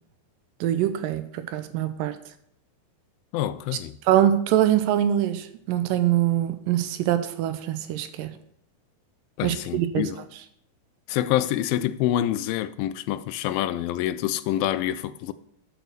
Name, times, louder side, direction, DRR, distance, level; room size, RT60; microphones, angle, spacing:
voice 1, 0.6-2.2 4.1-8.3 9.4-10.0, right 11 dB, 80° right, 2.3 m, -23 dB
voice 2, 3.3-4.0 9.4-10.2 11.1-15.3, left 12 dB, 90° left, 2.3 m, -26 dB
10.0 x 4.7 x 6.7 m
omnidirectional pair, 4.0 m